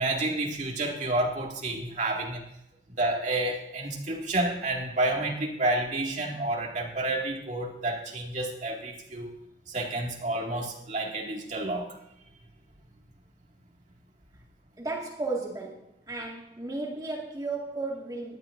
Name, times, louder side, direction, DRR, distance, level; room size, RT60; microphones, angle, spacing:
voice 1, 0.0-2.4 3.0-9.3 9.7-11.9, right 2 dB, 45° right, 0 dB, 2.1 m, -30 dB
voice 2, 14.8-18.4, right 3 dB, 20° right, -2 dB, 1.9 m, -34 dB
18.0 x 11.0 x 2.6 m, 0.79 s
head